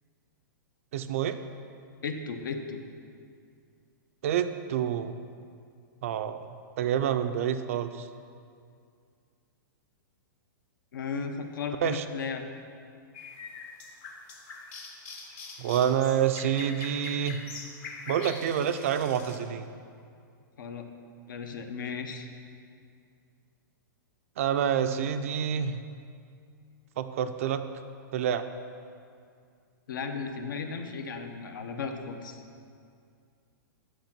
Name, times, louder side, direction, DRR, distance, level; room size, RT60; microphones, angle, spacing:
voice 1, 0.9-1.4 4.2-5.1 6.0-6.4 6.8-8.1 11.8-12.0 15.6-17.4 18.1-19.7 24.4-25.8 27.0-27.6 28.1-28.5, right 9 dB, 40° right, 10 dB, 0.4 m, -27 dB
voice 2, 2.0-2.8 10.9-12.4 20.6-20.9 21.3-22.3 29.9-32.4, left 5 dB, 70° left, 6 dB, 0.9 m, -35 dB
sound 1, 13.1-19.4, left 4 dB, 20° left, 0.6 m, -43 dB
8.2 x 6.3 x 5.9 m, 2.3 s
hypercardioid pair, 170°, 11 cm